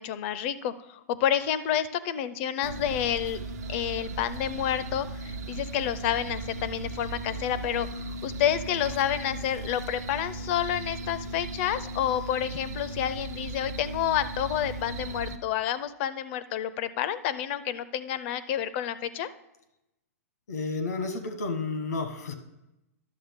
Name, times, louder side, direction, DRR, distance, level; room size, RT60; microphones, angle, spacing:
voice 1, 0.0-19.3, left 10 dB, 45° left, 15 dB, 0.4 m, -29 dB
sound 1, 2.6-15.4, right 2 dB, 80° right, 0.7 m, -37 dB
voice 2, 20.5-22.3, left 3 dB, 90° left, 9 dB, 1.2 m, -31 dB
11.0 x 6.9 x 3.6 m, 0.92 s
hypercardioid pair, 145°, 9 cm